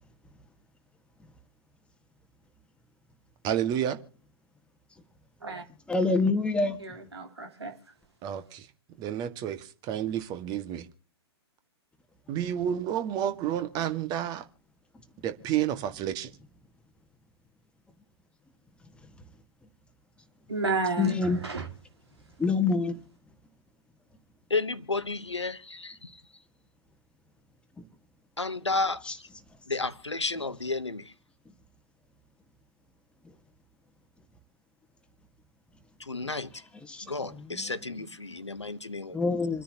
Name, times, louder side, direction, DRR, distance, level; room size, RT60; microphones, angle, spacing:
voice 1, 3.4-4.0 8.2-8.7 9.0-10.9 12.3-14.5 15.2-16.3, right 10 dB, 30° right, 1.6 m, -30 dB
voice 2, 5.9-6.8 21.0-21.4 22.4-23.0 29.1-29.2 36.9-37.0 37.3-37.7 39.1-39.6, left 4 dB, 5° left, 1.5 m, -26 dB
voice 3, 6.8-7.7 20.5-21.7, right 3 dB, 75° right, 3.4 m, -31 dB
voice 4, 24.5-26.1 28.4-29.3 29.7-31.1 36.0-36.5 37.0-39.2, left 3 dB, 85° left, 1.0 m, -32 dB
28.5 x 10.0 x 2.9 m
figure-of-eight pair, 110°, 14 cm